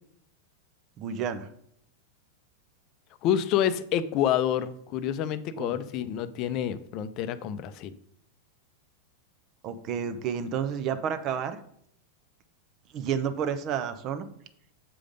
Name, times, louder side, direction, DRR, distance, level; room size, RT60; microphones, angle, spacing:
voice 1, 1.0-1.5 5.5-5.8 9.6-11.6 12.9-14.2, right 7 dB, 35° right, 10 dB, 0.8 m, -30 dB
voice 2, 3.2-8.0, left 10 dB, 40° left, 13 dB, 0.6 m, -28 dB
7.7 x 5.0 x 5.2 m, 0.67 s
figure-of-eight pair, 90°, 0 cm